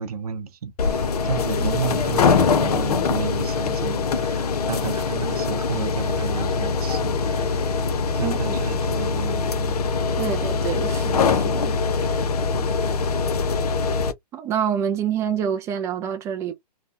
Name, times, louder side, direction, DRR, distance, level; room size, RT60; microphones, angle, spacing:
voice 1, 0.0-7.8 8.1-9.8 12.5-12.8, right 7 dB, 65° right, 0.7 m, -32 dB
sound 1, 0.8-14.1, left 5 dB, 65° left, 0.6 m, -23 dB
voice 2, 8.2-8.6 10.2-11.8 12.1-12.2 14.3-16.5, right 8 dB, 15° right, 0.3 m, -27 dB
2.8 x 2.1 x 2.5 m
figure-of-eight pair, 125°, 21 cm